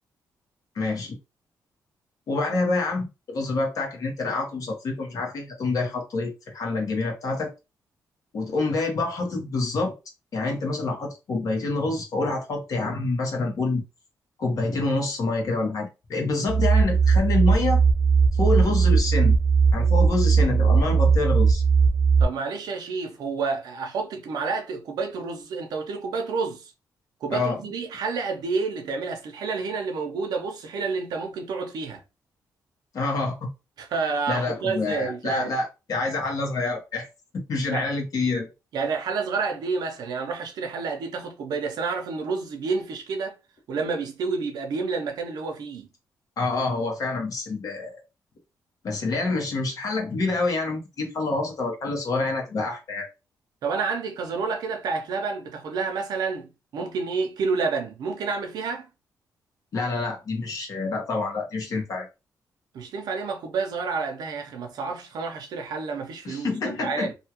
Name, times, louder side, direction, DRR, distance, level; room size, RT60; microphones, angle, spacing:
voice 1, 0.7-1.2 2.3-7.5 8.3-9.9 10.3-13.9 14.4-17.8 18.3-19.4 19.7-21.6 27.3-27.6 32.9-33.5 34.3-37.1 37.5-38.5 46.4-48.0 48.8-53.1 59.7-62.1 66.2-67.1, left 3 dB, 60° left, 1.2 m, -27 dB
sound 1, 16.5-22.2, right 5 dB, 45° right, 0.7 m, -19 dB
voice 2, 22.2-26.7 27.2-32.0 33.8-35.5 37.7-37.9 38.7-43.4 43.7-45.9 53.6-58.9 62.7-67.1, right 4 dB, 80° right, 0.7 m, -29 dB
2.7 x 2.4 x 2.9 m
cardioid pair, 100°, 7 cm